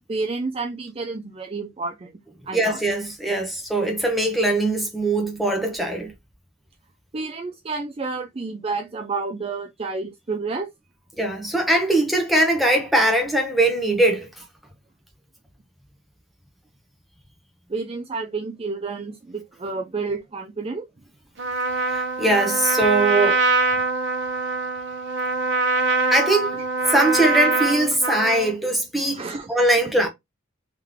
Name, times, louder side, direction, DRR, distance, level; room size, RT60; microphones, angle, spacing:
voice 1, 0.0-2.2 2.5-2.8 7.1-10.7 17.7-20.9 29.1-29.5, right 3 dB, 30° right, 0.4 m, -30 dB
voice 2, 2.5-6.1 11.2-14.3 21.9-23.4 26.1-26.6 26.9-29.2 29.5-30.1, right 1 dB, ahead, 0.9 m, -21 dB
Trumpet, 21.4-28.5, right 3 dB, 55° right, 1.0 m, -23 dB
3.6 x 3.1 x 3.5 m
head